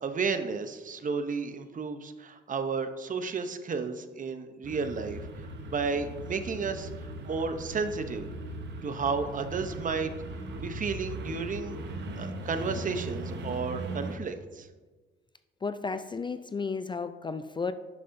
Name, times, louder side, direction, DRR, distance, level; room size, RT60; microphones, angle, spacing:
voice 1, 0.0-5.3 5.7-8.3 8.8-10.1 10.6-11.8 12.2-14.7, right 5 dB, 40° right, 9 dB, 0.8 m, -32 dB
sound 1, 4.6-14.2, right 1 dB, 65° right, 1.1 m, -39 dB
voice 2, 15.6-17.7, left 4 dB, 25° left, 11 dB, 0.4 m, -33 dB
11.0 x 7.6 x 2.6 m, 1.3 s
cardioid pair, 90°, 20 cm